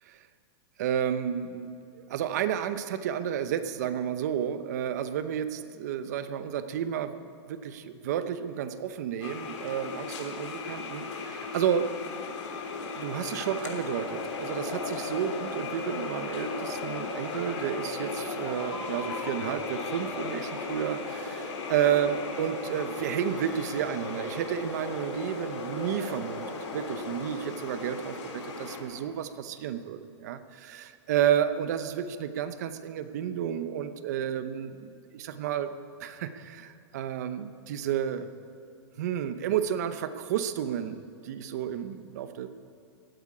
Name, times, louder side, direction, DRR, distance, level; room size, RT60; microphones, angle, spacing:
voice 1, 0.8-7.2 7.5-11.9 12.9-35.7 36.0-38.3 39.0-42.5, right 9 dB, 35° right, 11 dB, 0.8 m, -31 dB
sound 1, 9.2-28.8, left 3 dB, 85° left, 3.3 m, -36 dB
Bird, 15.2-27.0, equal, 10° right, 1.7 m, -51 dB
16.0 x 8.8 x 9.7 m, 2.5 s
supercardioid pair, 180°, 15 cm